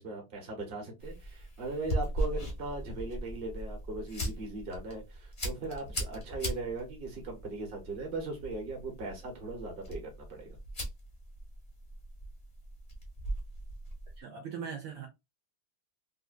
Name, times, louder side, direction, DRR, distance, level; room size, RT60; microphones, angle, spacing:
voice 1, 0.0-10.6, right 2 dB, 35° right, 0.9 m, -39 dB
sound 1, 1.0-14.2, right 1 dB, 45° left, 0.4 m, -39 dB
voice 2, 14.2-15.1, right 7 dB, 70° right, 1.2 m, -40 dB
3.2 x 2.5 x 2.4 m
omnidirectional pair, 2.4 m